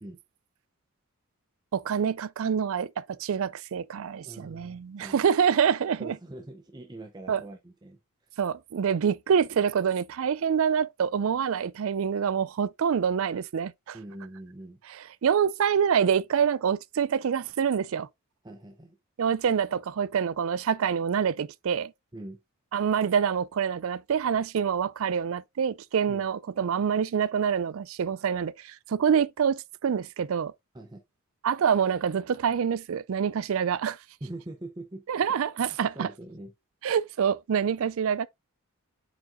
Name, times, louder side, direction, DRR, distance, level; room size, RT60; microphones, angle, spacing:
voice 1, 1.7-6.1 7.3-7.4 8.4-14.0 15.2-18.1 19.2-21.9 22.7-30.5 31.4-34.0 35.1-36.1 36.8-38.3, right 7 dB, 65° right, 0.4 m, -26 dB
voice 2, 4.2-5.3 6.0-8.0 13.9-14.8 18.4-19.0 22.1-22.4 26.1-26.2 30.7-31.0 34.2-35.4 35.9-36.5, right 1 dB, 20° right, 0.6 m, -43 dB
7.5 x 5.1 x 2.6 m
head